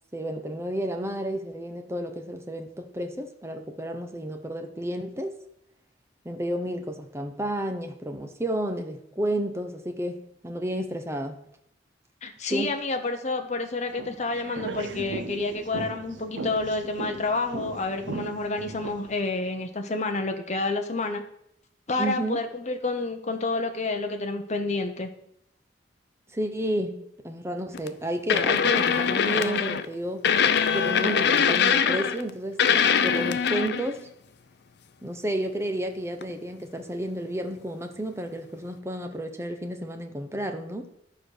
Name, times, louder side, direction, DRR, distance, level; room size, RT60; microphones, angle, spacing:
voice 1, 0.1-5.3 6.2-10.2 10.4-11.4 12.5-12.7 22.0-22.5 26.3-30.3 30.7-32.6 33.0-34.0 35.0-40.9, right 1 dB, 15° right, 5 dB, 1.0 m, -31 dB
voice 2, 12.2-21.2 21.9-25.1, left 3 dB, 40° left, 5 dB, 1.0 m, -29 dB
sound 1, 13.9-19.2, right 3 dB, 75° right, 0.8 m, -37 dB
sound 2, 27.7-27.9 28.3-29.9 30.2-32.3 32.6-33.9 36.2-36.3, left 7 dB, 60° left, 0.5 m, -22 dB
11.0 x 4.9 x 6.5 m, 0.74 s
head